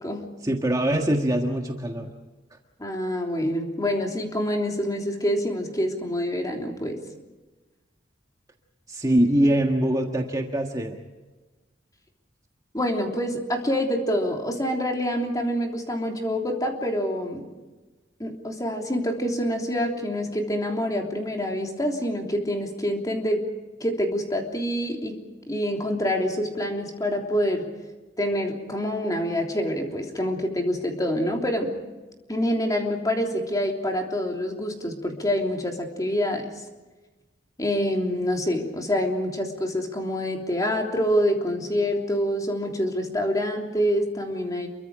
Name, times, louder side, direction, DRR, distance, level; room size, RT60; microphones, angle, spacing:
voice 1, 0.4-2.1 8.9-11.0, right 1 dB, 20° right, 2 dB, 1.6 m, -23 dB
voice 2, 2.8-7.0 12.7-17.5 18.2-23.4 23.8-25.2 25.5-27.7 28.2-31.7 32.3-36.4 37.6-44.7, equal, 20° left, 1 dB, 3.3 m, -26 dB
28.0 x 23.5 x 5.0 m, 1.2 s
head